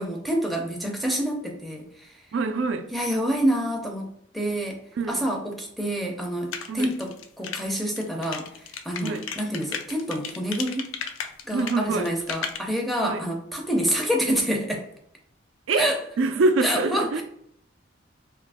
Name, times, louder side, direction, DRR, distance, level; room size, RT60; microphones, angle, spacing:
voice 1, 0.0-2.2 2.9-4.8 5.1-10.9 11.4-14.9 15.8-16.0 16.6-17.2, equal, ahead, 0.4 m, -27 dB
voice 2, 2.3-2.9 5.0-5.3 6.7-6.9 9.0-9.3 11.5-12.1 13.0-13.2 15.7-15.9 16.2-17.2, right 3 dB, 70° right, 0.3 m, -25 dB
sound 1, 6.5-12.6, left 7 dB, 80° left, 0.4 m, -34 dB
2.8 x 2.5 x 3.4 m
head